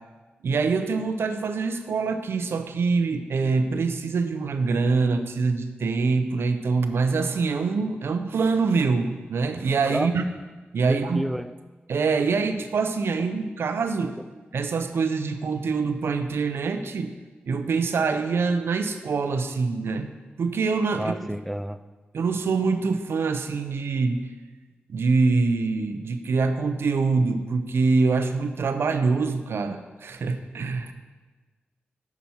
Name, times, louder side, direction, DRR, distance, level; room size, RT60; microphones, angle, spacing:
voice 1, 0.4-10.2 10.7-11.3 11.9-14.2 14.5-17.2 17.5-20.1 20.4-21.2 22.1-24.3 24.9-30.9, right 4 dB, 85° right, 8 dB, 0.6 m, -24 dB
voice 2, 10.9-11.5 21.0-21.8, equal, ahead, 11 dB, 0.3 m, -29 dB
9.5 x 5.9 x 4.3 m, 1.3 s
cardioid pair, 60°, 4 cm